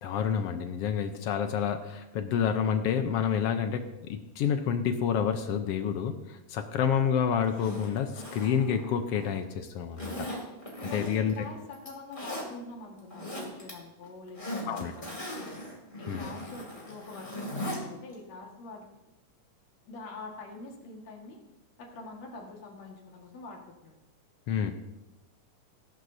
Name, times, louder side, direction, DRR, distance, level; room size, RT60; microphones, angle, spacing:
voice 1, 0.0-10.3 10.8-11.3 14.7-14.9 16.1-16.2 24.5-24.7, left 8 dB, 75° left, 7 dB, 1.4 m, -29 dB
Zipper (clothing), 7.5-9.4 10.0-11.4 11.7-12.5 13.0-13.7 14.0-17.8 18.1-18.2, left 1 dB, 15° left, 2.6 m, -39 dB
voice 2, 10.9-15.5 16.0-18.9 19.9-21.4 21.8-24.0 24.6-24.7, left 3 dB, 60° left, 0 dB, 2.9 m, -45 dB
19.0 x 11.0 x 2.7 m, 0.95 s
omnidirectional pair, 3.6 m